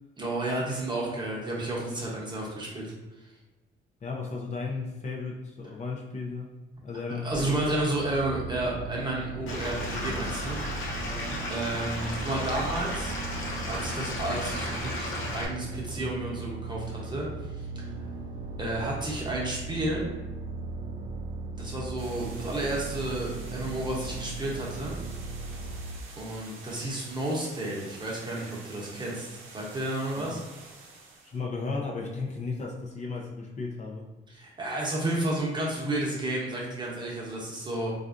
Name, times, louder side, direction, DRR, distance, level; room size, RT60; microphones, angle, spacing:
voice 1, 0.2-3.3 7.2-10.6 11.5-13.2 13.7-17.8 18.6-20.1 21.6-25.0 26.1-30.4 34.3-37.9, right 1 dB, 20° right, -4 dB, 0.9 m, -32 dB
voice 2, 4.0-6.6 6.8-7.6 11.0-11.5 30.3-30.4 31.2-34.1, left 4 dB, 35° left, -2 dB, 0.5 m, -35 dB
sound 1, 7.3-26.0, right 3 dB, 40° right, 0.4 m, -37 dB
Stream / Liquid, 9.5-15.5, left 1 dB, 85° left, 0.7 m, -34 dB
sound 2, 22.0-31.4, right 3 dB, 85° right, 0.6 m, -48 dB
3.3 x 2.5 x 2.5 m, 1.1 s
cardioid pair, 90°, 20 cm